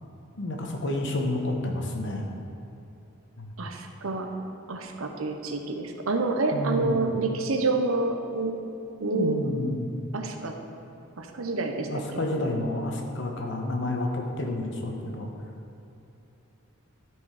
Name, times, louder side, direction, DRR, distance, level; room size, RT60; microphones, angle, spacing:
voice 1, 0.4-2.3 3.4-3.7 6.5-7.0 9.0-9.9 11.7-15.3, left 1 dB, 55° left, 2 dB, 1.0 m, -30 dB
voice 2, 3.6-4.3 4.7-8.5 9.0-9.3 10.1-10.5 11.2-11.9, right 3 dB, 80° right, 4 dB, 0.8 m, -28 dB
12.5 x 4.7 x 4.9 m, 2.9 s
head